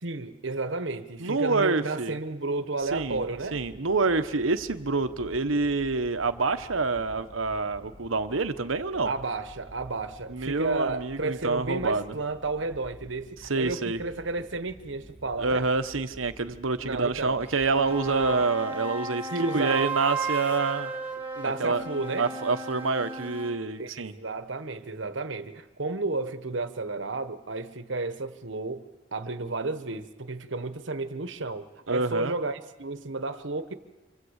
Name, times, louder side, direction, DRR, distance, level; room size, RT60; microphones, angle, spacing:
voice 1, 0.0-3.6 9.0-15.6 16.8-17.4 18.1-18.5 19.3-19.9 21.4-22.3 23.8-28.8 29.1-33.7, right 3 dB, 65° right, 10 dB, 1.3 m, -32 dB
voice 2, 1.2-2.2 2.9-3.2 3.5-9.1 10.3-12.2 13.5-14.0 15.4-20.9 21.6-21.8 22.2-24.1 31.9-32.3, right 3 dB, 90° right, 10 dB, 1.2 m, -27 dB
sound 1, 2.8-18.4, equal, 40° left, 3.5 m, -50 dB
sound 2, 17.4-23.6, right 3 dB, 10° right, 1.8 m, -35 dB
27.0 x 25.5 x 8.2 m, 1.2 s
head